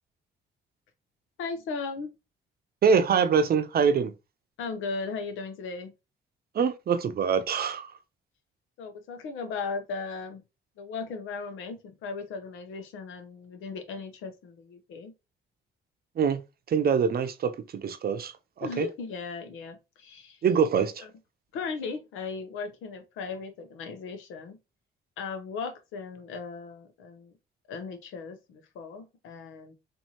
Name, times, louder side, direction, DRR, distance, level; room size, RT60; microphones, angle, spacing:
voice 1, 1.4-2.1 4.6-5.9 8.8-10.4 10.8-15.1 18.6-20.4 21.0-21.1 21.5-24.6 25.2-27.3 27.7-29.7, left 4 dB, 85° left, 0.9 m, -37 dB
voice 2, 2.8-4.1 6.5-7.9 16.2-16.4 16.7-18.3 18.6-18.9 20.4-21.0, right 6 dB, 50° right, 0.7 m, -24 dB
4.4 x 2.7 x 2.9 m
cardioid pair, 90°, 20 cm